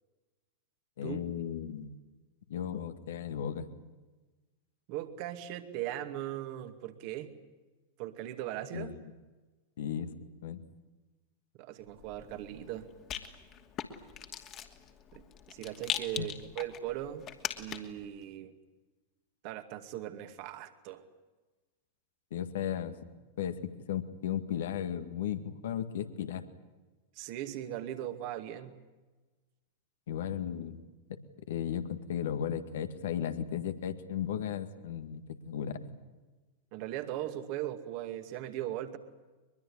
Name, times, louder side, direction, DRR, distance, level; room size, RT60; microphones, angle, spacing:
voice 1, 1.0-1.9 2.5-3.7 8.7-9.1 9.8-10.1 10.4-10.6 16.2-16.3 22.3-23.1 23.4-26.4 30.1-30.8 31.1-31.2 31.5-35.9, left 9 dB, 60° left, 9 dB, 2.0 m, -35 dB
voice 2, 4.9-7.3 8.0-8.9 11.6-12.9 15.1-17.3 17.6-18.5 19.4-21.0 27.2-28.8 36.7-39.0, right 13 dB, 45° right, 8 dB, 2.3 m, -39 dB
Rattle, 11.9-18.0, left 10 dB, 30° left, 2.6 m, -41 dB
23.5 x 22.5 x 10.0 m, 1.2 s
figure-of-eight pair, 90°, 0 cm